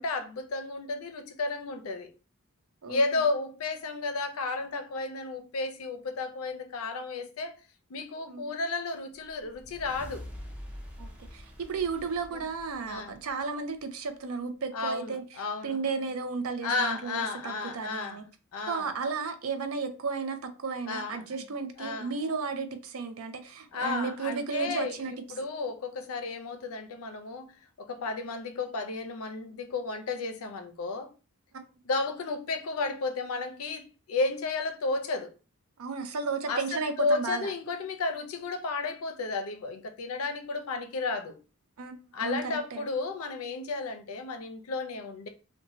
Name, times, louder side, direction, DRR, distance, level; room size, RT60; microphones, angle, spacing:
voice 1, 0.0-2.1 2.9-7.6 7.9-10.2 12.3-12.4 12.9-13.2 14.7-15.8 16.6-18.2 18.5-18.9 20.9-21.3 21.8-22.1 23.7-31.1 31.8-35.3 36.5-41.4 42.1-45.3, left 3 dB, 70° left, 0.5 m, -33 dB
sound 1, 9.2-13.8, equal, 5° right, 0.5 m, -46 dB
voice 2, 11.0-15.2 15.6-18.2 18.7-25.1 31.5-31.6 35.8-37.5 41.8-41.9 42.2-42.9, right 4 dB, 70° right, 0.5 m, -33 dB
2.6 x 2.2 x 2.9 m
head